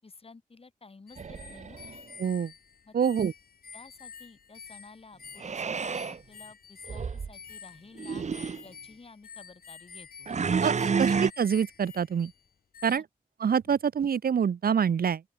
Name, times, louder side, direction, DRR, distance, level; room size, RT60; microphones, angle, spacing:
voice 1, 0.0-1.8 2.8-2.9 3.7-10.3 10.9-11.0 12.9-13.0 13.6-13.7, left 3 dB, 40° left, 6.6 m, -52 dB
sound 1, 1.1-12.5 12.7-13.0, left 6 dB, 90° left, 2.4 m, -49 dB
sound 2, 1.2-2.0 5.4-6.2 6.9-7.3 8.0-8.6 10.3-11.3, right 5 dB, 50° right, 0.9 m, -29 dB
voice 2, 2.2-2.5 2.9-3.3 10.6-12.3 12.8-13.0 13.4-15.2, right 7 dB, 85° right, 1.0 m, -26 dB
open air
wide cardioid pair, 130°, 15 cm